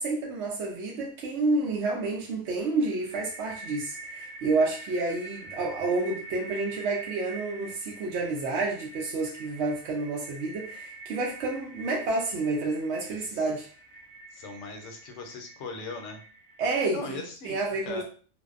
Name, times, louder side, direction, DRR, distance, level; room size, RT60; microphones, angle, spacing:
voice 1, 0.0-13.7 16.6-18.0, right 3 dB, 65° right, 0.8 m, -29 dB
sound 1, 2.6-16.9, right 2 dB, 20° left, 0.4 m, -45 dB
voice 2, 13.1-13.5 14.3-16.2 16.9-17.6 17.8-18.0, left 3 dB, 65° left, 0.9 m, -39 dB
2.6 x 2.1 x 2.4 m
omnidirectional pair, 1.5 m